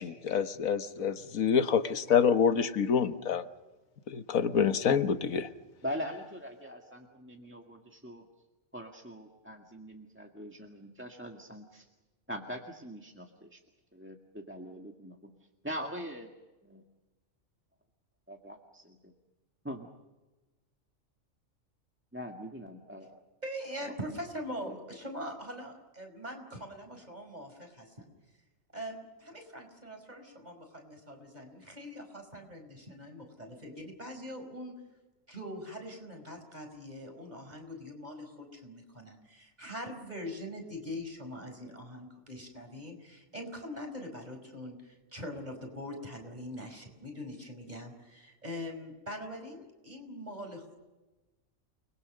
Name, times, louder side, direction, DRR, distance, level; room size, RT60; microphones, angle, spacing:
voice 1, 0.0-3.4 4.1-5.5, left 7 dB, 90° left, 9 dB, 1.6 m, -27 dB
voice 2, 5.8-8.2 8.7-11.9 12.3-13.6 13.9-15.3 15.6-16.3 16.6-16.8 18.3-19.0 19.6-19.9 22.1-23.2 23.8-23.9 24.6-24.8, equal, 10° right, 2 dB, 1.7 m, -42 dB
voice 3, 23.4-28.1 28.7-34.7 35.3-50.8, equal, 30° right, 4 dB, 5.4 m, -42 dB
29.5 x 21.5 x 6.5 m, 1.1 s
omnidirectional pair, 1.4 m